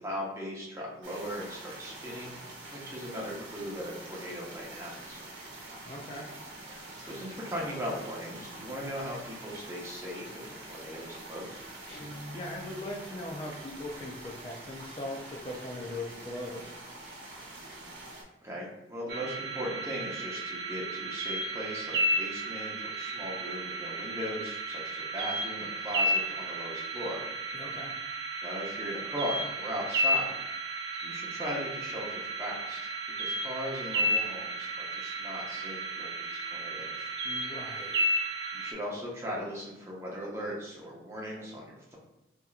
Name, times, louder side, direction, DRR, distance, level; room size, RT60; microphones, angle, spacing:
voice 1, 0.0-2.4 2.7-5.3 7.0-11.7 18.4-27.2 28.4-30.4 31.0-32.8 33.2-37.1 38.5-42.0, equal, 15° right, -4 dB, 0.8 m, -38 dB
sound 1, 1.0-18.2, right 2 dB, 85° right, 0.9 m, -46 dB
voice 2, 5.8-6.3 12.3-16.8 27.5-27.9 37.2-38.0, left 1 dB, 30° left, -2 dB, 0.3 m, -40 dB
Guitar, 11.9-13.0, equal, 60° left, 1.1 m, -45 dB
sound 2, 19.1-38.7, right 1 dB, 65° right, 0.4 m, -33 dB
3.5 x 2.8 x 2.3 m, 0.99 s
head